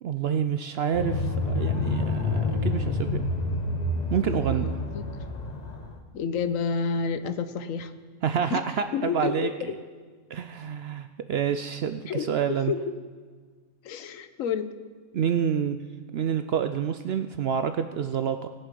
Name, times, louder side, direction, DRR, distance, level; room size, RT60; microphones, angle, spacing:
voice 1, 0.0-3.2 4.1-4.8 8.2-9.7 10.3-12.7 15.1-15.8 16.1-18.5, right 8 dB, 70° right, 9 dB, 0.6 m, -28 dB
sound 1, 0.9-6.0, left 2 dB, 30° left, 1.0 m, -28 dB
voice 2, 4.4-5.1 6.1-7.9 8.5-8.6 8.9-9.8 12.1-12.9 13.8-14.7, left 5 dB, 70° left, 11 dB, 1.1 m, -30 dB
19.5 x 7.2 x 5.3 m, 1.5 s
omnidirectional pair, 1.5 m